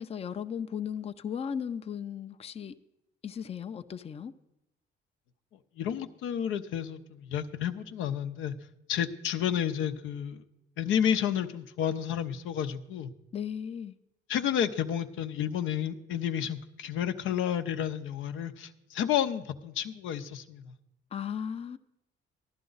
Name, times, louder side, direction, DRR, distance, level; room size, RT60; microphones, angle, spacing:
voice 1, 0.0-2.7 3.2-4.3 13.3-13.9 21.1-21.8, left 8 dB, 30° left, 0.5 m, -36 dB
voice 2, 5.8-8.5 8.9-10.4 10.8-13.1 14.3-20.7, left 9 dB, 85° left, 0.7 m, -31 dB
14.5 x 11.0 x 3.9 m
cardioid pair, 90°, 20 cm